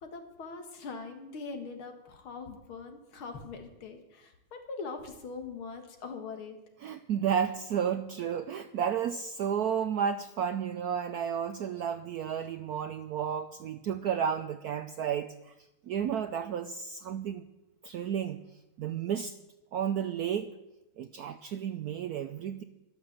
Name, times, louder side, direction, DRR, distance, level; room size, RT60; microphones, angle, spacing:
voice 1, 0.0-6.6, left 4 dB, 80° left, 5 dB, 2.6 m, -42 dB
voice 2, 6.8-15.5 15.9-17.5 17.8-18.4 18.8-19.3 19.7-20.5 21.0-22.6, right 8 dB, 75° right, 10 dB, 0.9 m, -32 dB
12.5 x 11.5 x 7.5 m, 0.98 s
omnidirectional pair, 2.3 m